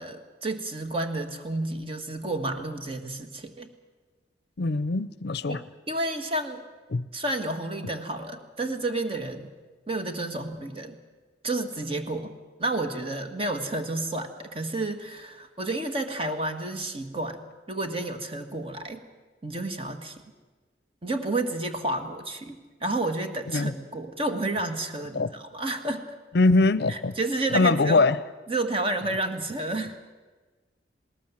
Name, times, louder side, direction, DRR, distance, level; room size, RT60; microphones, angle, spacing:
voice 1, 0.0-3.7 5.5-6.6 7.1-9.5 9.9-11.0 11.4-12.3 12.6-17.4 17.7-19.0 19.4-20.2 21.0-26.0 26.9-28.1 28.5-30.1, right 2 dB, 30° right, 7 dB, 1.7 m, -30 dB
voice 2, 4.6-5.6 6.9-7.1 23.5-23.7 25.1-25.3 26.3-27.1 27.5-28.2, left 3 dB, 60° left, 16 dB, 0.6 m, -22 dB
20.5 x 18.5 x 7.3 m, 1.3 s
head